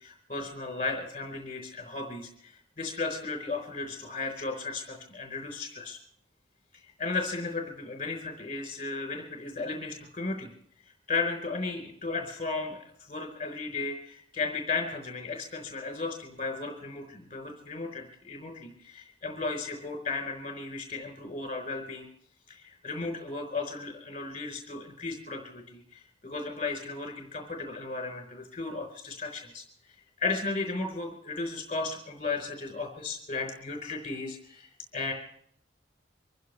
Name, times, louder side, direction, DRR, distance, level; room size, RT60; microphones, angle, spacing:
voice 1, 0.0-6.0 6.8-10.5 11.1-22.1 22.5-29.9 30.2-35.1, left 3 dB, 35° left, 3 dB, 4.3 m, -35 dB
25.5 x 15.5 x 3.4 m, 0.64 s
head